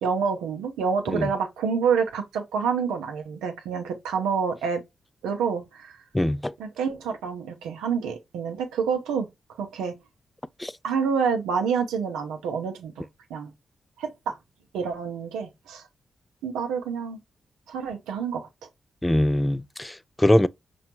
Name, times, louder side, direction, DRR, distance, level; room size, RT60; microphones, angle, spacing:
voice 1, 0.0-4.8 5.2-6.0 6.6-9.3 9.6-9.9 10.8-13.5 14.0-14.4 14.7-15.8 16.4-17.2 17.7-18.7, right 6 dB, 85° right, 0.5 m, -28 dB
voice 2, 6.1-6.5 10.6-10.7 19.0-20.5, left 1 dB, 15° left, 0.3 m, -22 dB
4.9 x 2.3 x 2.8 m
hypercardioid pair, 40°, 0 cm